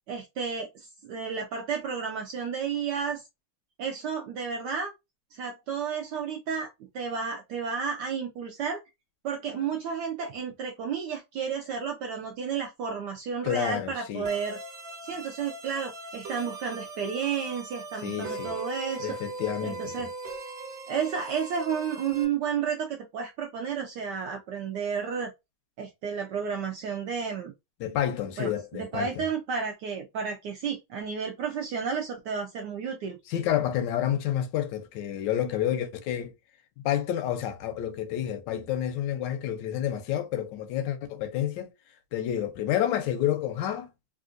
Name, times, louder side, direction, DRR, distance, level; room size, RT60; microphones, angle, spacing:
voice 1, 0.1-3.2 3.8-4.9 5.3-6.7 6.9-8.8 9.2-14.6 15.0-19.2 19.6-20.1 20.9-25.3 25.8-27.5 28.4-33.2, right 6 dB, 75° right, 1.0 m, -32 dB
voice 2, 13.4-14.3 18.0-18.6 19.0-20.1 27.8-29.3 33.3-36.3 36.8-41.7 42.1-43.9, left 11 dB, 75° left, 1.1 m, -29 dB
sound 1, 14.2-22.2, right 3 dB, 55° right, 1.1 m, -40 dB
3.5 x 2.5 x 2.4 m
omnidirectional pair, 2.3 m